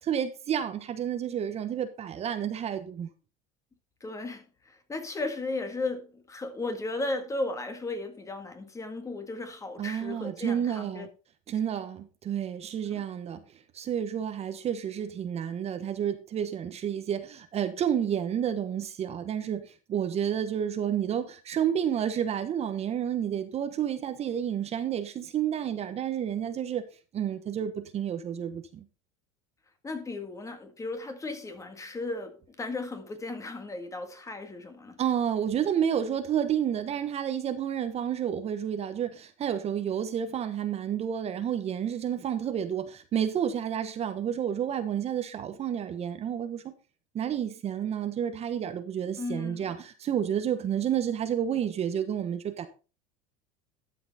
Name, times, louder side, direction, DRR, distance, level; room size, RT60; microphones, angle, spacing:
voice 1, 0.0-3.1 9.8-11.1 11.5-13.4 13.7-26.8 27.1-28.8 35.0-46.7 47.1-52.7, right 9 dB, 35° right, 1.2 m, -30 dB
voice 2, 4.0-11.1 12.9-13.0 29.8-35.0 49.2-49.7, left 2 dB, 15° left, 1.8 m, -35 dB
12.5 x 5.9 x 4.2 m
supercardioid pair, 110°, 18 cm